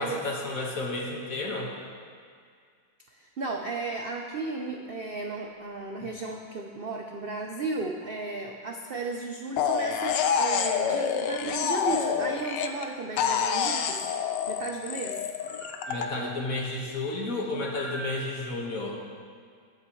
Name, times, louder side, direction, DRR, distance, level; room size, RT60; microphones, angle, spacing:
voice 1, 0.0-1.7 15.9-19.0, left 2 dB, 50° left, -2 dB, 2.0 m, -32 dB
voice 2, 3.1-14.1 14.5-15.3, right 3 dB, 60° right, 2 dB, 0.6 m, -34 dB
sound 1, 5.1-5.4 6.3-6.7 8.0-8.4 11.2-12.5 13.1-14.6 15.4-16.8 17.6-18.3, right 3 dB, 20° left, 1.1 m, -46 dB
sound 2, 9.6-12.8 13.2-16.0, left 7 dB, 85° left, 1.3 m, -27 dB
22.0 x 7.9 x 3.1 m, 2.1 s
omnidirectional pair, 1.9 m